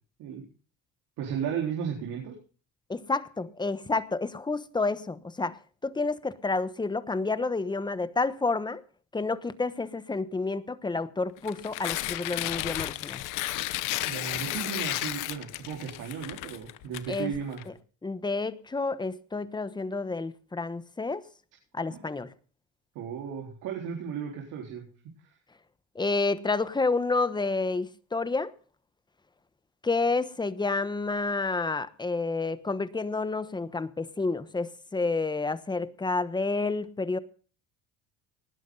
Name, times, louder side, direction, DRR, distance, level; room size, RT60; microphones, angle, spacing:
voice 1, 1.2-2.3 14.1-17.6 21.9-22.0 22.9-24.8, right 7 dB, 75° right, 4.2 m, -35 dB
voice 2, 2.9-8.8 9.1-13.2 17.1-17.3 18.0-21.2 21.7-22.3 25.9-28.5 29.8-37.2, left 3 dB, 15° left, 1.1 m, -29 dB
Tearing, 11.4-17.6, left 17 dB, 80° left, 1.1 m, -33 dB
19.5 x 11.5 x 3.9 m
cardioid pair, 105°, 31 cm